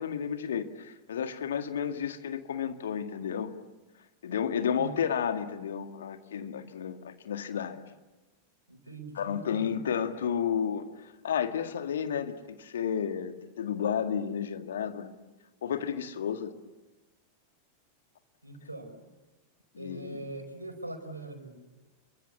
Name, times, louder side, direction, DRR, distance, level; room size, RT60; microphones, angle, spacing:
voice 1, 0.0-3.5 4.2-7.8 9.2-10.8 11.2-15.1 15.6-16.5 19.8-20.2, left 8 dB, 65° left, 8 dB, 1.9 m, -32 dB
voice 2, 8.7-9.8 18.4-19.0 19.8-21.6, right 2 dB, 85° right, 6 dB, 4.8 m, -42 dB
29.5 x 23.0 x 8.5 m, 1.1 s
figure-of-eight pair, 90°, 0 cm